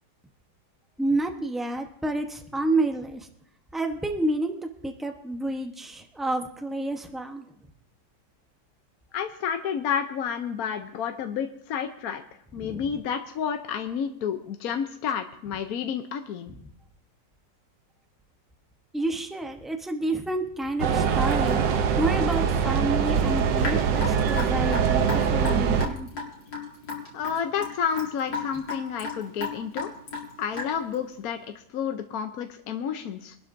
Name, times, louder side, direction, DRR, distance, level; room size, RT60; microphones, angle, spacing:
voice 1, 1.0-3.3 3.7-4.5 4.8-7.4 12.6-12.8 18.9-21.6 22.0-26.1, right 2 dB, ahead, 4 dB, 0.4 m, -29 dB
voice 2, 9.1-12.2 12.5-16.5 27.1-29.9 30.4-31.4 31.7-33.4, left 7 dB, 60° left, 6 dB, 1.1 m, -30 dB
sound 1, 20.8-25.9, right 7 dB, 70° right, 1.4 m, -23 dB
Raindrop / Drip, 23.6-30.9, left 4 dB, 80° left, 2.9 m, -34 dB
25.0 x 12.0 x 2.7 m, 0.69 s
omnidirectional pair, 2.0 m